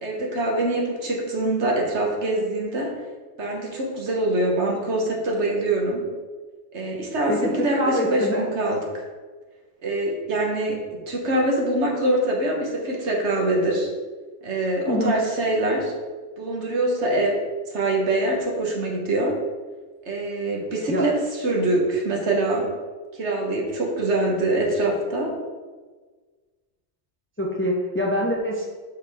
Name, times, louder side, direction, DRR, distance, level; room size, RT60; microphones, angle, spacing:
voice 1, 0.0-2.9 3.4-6.1 6.7-9.0 9.8-13.9 14.4-15.9 16.4-17.4 17.7-19.4 20.0-22.7 23.1-25.3, right 1 dB, 60° right, -1 dB, 1.5 m, -24 dB
voice 2, 7.3-8.4 14.9-15.2 20.9-21.1 27.4-28.7, equal, 15° left, -1 dB, 0.5 m, -24 dB
6.1 x 5.5 x 3.5 m, 1.4 s
omnidirectional pair, 1.3 m